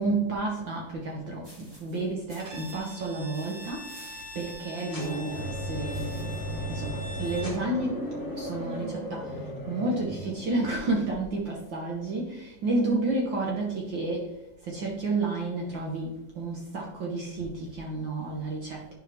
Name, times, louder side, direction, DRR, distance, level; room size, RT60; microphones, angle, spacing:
voice 1, 0.0-3.9 4.3-6.3 6.7-9.3 9.7-14.3 14.7-18.8, right 2 dB, 70° right, -1 dB, 1.1 m, -31 dB
sound 1, 1.4-6.5, equal, 10° right, 1.4 m, -55 dB
Bowed string instrument, 2.4-7.6, left 1 dB, 90° right, 0.8 m, -44 dB
sound 2, 4.9-10.9, equal, 15° left, 0.8 m, -35 dB
11.0 x 5.0 x 3.4 m, 0.86 s
omnidirectional pair, 3.7 m